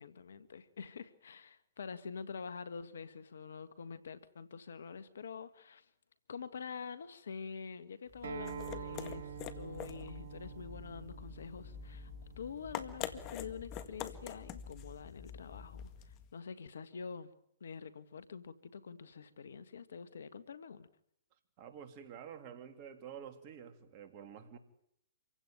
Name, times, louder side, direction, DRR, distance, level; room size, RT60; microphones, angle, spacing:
voice 1, 0.0-5.8 6.3-12.1 12.4-15.9 16.3-17.3 17.6-20.9, left 6 dB, 75° left, 1.6 m, -46 dB
sound 1, 8.1-16.3, left 9 dB, 35° left, 1.9 m, -46 dB
Acoustic guitar, 8.2-13.4, right 9 dB, 65° right, 1.4 m, -48 dB
voice 2, 21.6-24.6, right 8 dB, 40° right, 3.2 m, -49 dB
26.5 x 16.5 x 9.4 m
hypercardioid pair, 130°, 0 cm